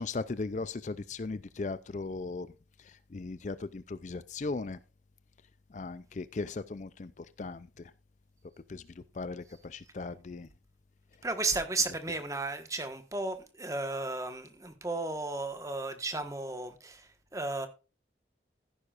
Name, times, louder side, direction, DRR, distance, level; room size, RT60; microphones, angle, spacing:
voice 1, 0.0-2.5 2.9-4.8 5.7-7.7 8.7-10.5, left 3 dB, 40° left, 0.4 m, -38 dB
voice 2, 11.2-17.7, right 3 dB, 15° right, 1.4 m, -34 dB
15.5 x 9.7 x 2.5 m
head